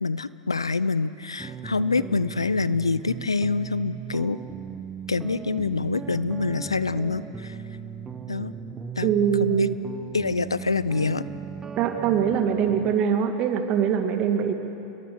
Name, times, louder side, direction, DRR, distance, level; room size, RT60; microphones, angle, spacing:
voice 1, 0.0-4.4 5.1-7.6 8.3-8.5 9.0-9.1 9.4-9.7 10.1-11.2, left 4 dB, 85° left, 16 dB, 0.6 m, -26 dB
sound 1, 1.4-13.0, right 7 dB, 20° right, 1.2 m, -37 dB
voice 2, 9.0-9.7 11.8-14.5, right 8 dB, 45° right, 6 dB, 2.4 m, -23 dB
29.5 x 22.0 x 6.4 m, 2.9 s
figure-of-eight pair, 90°, 3 cm